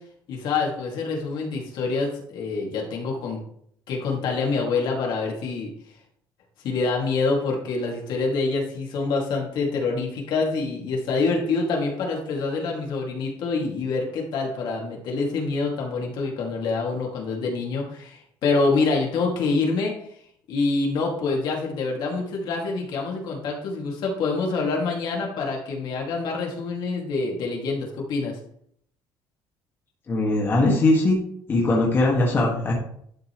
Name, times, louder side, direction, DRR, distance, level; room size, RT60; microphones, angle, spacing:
voice 1, 0.3-3.4 3.9-5.7 6.6-19.9 20.5-28.4, left 4 dB, 60° left, 0 dB, 2.2 m, -26 dB
voice 2, 30.1-31.2 31.5-32.7, left 2 dB, 25° left, -3 dB, 1.7 m, -20 dB
11.5 x 5.4 x 3.1 m, 0.66 s
cardioid pair, 165°, 8 cm